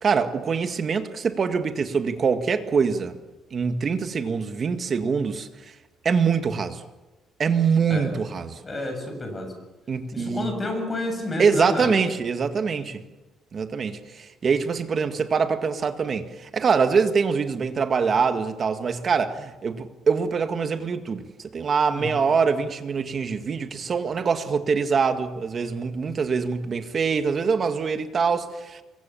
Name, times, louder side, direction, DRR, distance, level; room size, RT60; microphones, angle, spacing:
voice 1, 0.0-3.1 3.5-5.5 6.0-6.8 7.4-8.6 9.9-10.5 11.4-13.0 13.5-21.3 21.5-28.8, right 5 dB, 35° right, 1.9 m, -24 dB
voice 2, 8.6-9.5 10.1-11.9 21.9-22.2, left 2 dB, 20° left, 7.2 m, -30 dB
26.5 x 23.0 x 7.2 m
cardioid pair, 140°, 0 cm